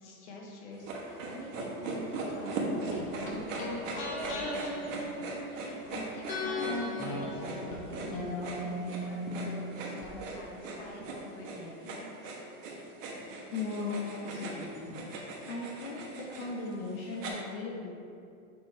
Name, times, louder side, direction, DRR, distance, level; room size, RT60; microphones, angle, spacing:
voice 1, 0.0-12.4, left 1 dB, 55° left, -2 dB, 1.3 m, -46 dB
sound 1, 0.8-17.3, right 3 dB, 65° right, 1.3 m, -40 dB
sound 2, 2.9-5.9 6.3-10.1 10.3-10.4, left 1 dB, 20° left, 0.7 m, -37 dB
voice 2, 13.5-15.1 15.5-17.9, left 4 dB, 70° left, -4 dB, 1.1 m, -37 dB
6.6 x 3.4 x 4.5 m, 2.5 s
supercardioid pair, 160°, 42 cm